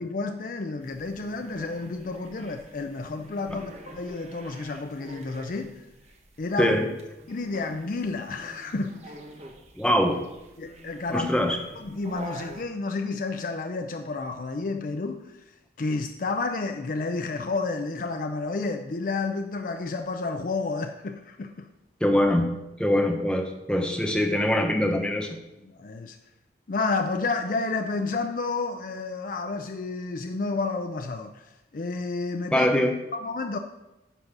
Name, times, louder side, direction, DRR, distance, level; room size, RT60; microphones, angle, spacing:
voice 1, 0.0-5.8 6.4-6.7 7.3-9.2 10.6-11.3 11.8-15.4 15.8-21.7 25.6-26.2 26.7-32.7 33.1-33.6, left 3 dB, 50° left, 6 dB, 0.5 m, -30 dB
sound 1, 0.8-12.6, right 1 dB, 35° right, 1.0 m, -46 dB
voice 2, 6.6-6.9 9.8-10.2 11.1-11.6 22.0-22.5 22.8-25.4 32.5-32.9, left 1 dB, 5° left, 3 dB, 0.8 m, -23 dB
10.0 x 4.0 x 5.9 m, 0.95 s
head